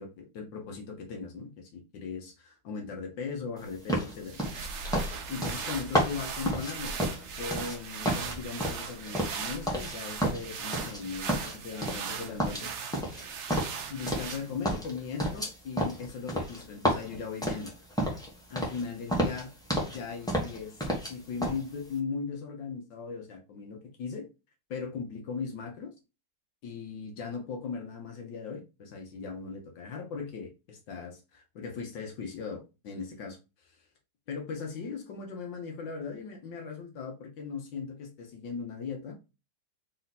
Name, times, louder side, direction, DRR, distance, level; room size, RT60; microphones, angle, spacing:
voice 1, 0.0-4.4 5.3-6.9 7.4-12.7 13.9-17.7 18.5-19.5 19.9-24.3 24.7-25.9 26.6-33.8 34.3-39.1, left 5 dB, 75° left, 1.6 m, -38 dB
sound 1, 3.9-7.8 8.0-9.9 10.2-11.0 11.3-12.1 12.4-14.4 14.6-18.3 18.6-18.8 19.1-20.0 20.3-21.1 21.4-21.6, equal, 5° left, 0.9 m, -31 dB
sound 2, 4.1-14.7, right 6 dB, 70° right, 0.6 m, -39 dB
4.3 x 2.8 x 4.0 m
omnidirectional pair, 2.0 m